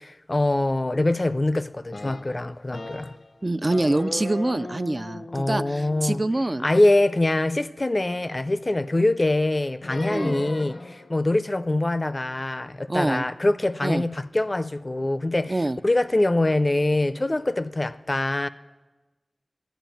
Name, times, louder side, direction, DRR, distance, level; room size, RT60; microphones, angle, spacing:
voice 1, 0.0-3.1 5.3-6.2 6.6-15.6 15.8-18.5, left 2 dB, 40° left, 0.5 m, -24 dB
sound 1, 1.9-3.3 3.7-8.0 9.8-11.1, left 2 dB, 75° left, 0.8 m, -38 dB
voice 2, 3.4-6.7 10.1-10.4 12.9-13.3 13.8-14.0 15.5-15.8, right 2 dB, 40° right, 0.3 m, -25 dB
11.0 x 9.3 x 9.0 m
wide cardioid pair, 55°, 0 cm